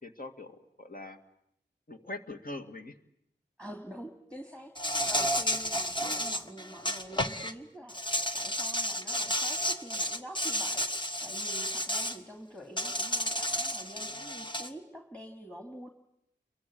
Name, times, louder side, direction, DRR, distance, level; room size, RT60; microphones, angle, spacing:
voice 1, 0.0-1.2 1.9-3.0 6.0-6.2, left 2 dB, 50° left, 6 dB, 2.3 m, -43 dB
voice 2, 3.6-10.9 11.2-15.9, equal, 5° left, 5 dB, 2.5 m, -46 dB
Insect, 4.8-7.5 7.9-12.2 12.8-14.7, equal, 25° left, 1.6 m, -32 dB
29.5 x 23.0 x 8.7 m, 0.76 s
wide cardioid pair, 70°, 19 cm